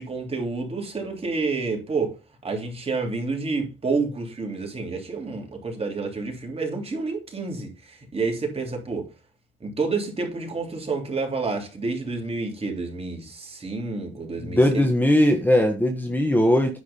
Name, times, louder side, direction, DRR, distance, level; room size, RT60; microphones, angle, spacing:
voice 1, 0.0-2.2 2.4-9.1 9.6-14.8, right 4 dB, 30° right, 3.5 m, -29 dB
voice 2, 14.4-16.8, left 1 dB, 10° left, 1.4 m, -19 dB
10.0 x 4.8 x 5.5 m
cardioid pair, 90°, 20 cm